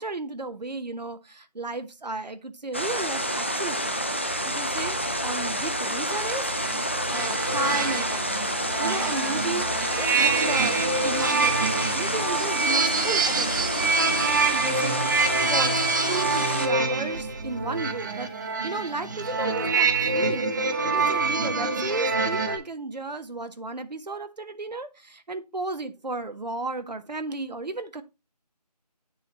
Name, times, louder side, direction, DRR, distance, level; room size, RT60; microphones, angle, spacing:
voice 1, 0.0-4.0 4.4-6.5 6.7-8.4 8.8-9.7 10.0-11.6 11.9-13.8 14.5-15.8 16.1-18.3 18.6-28.0, right 3 dB, 85° right, 9 dB, 1.2 m, -34 dB
sound 1, 2.7-16.7, equal, 20° left, 0.5 m, -28 dB
sound 2, 6.0-22.6, right 4 dB, 30° right, 1.0 m, -26 dB
10.0 x 3.9 x 4.2 m, 0.25 s
figure-of-eight pair, 170°, 21 cm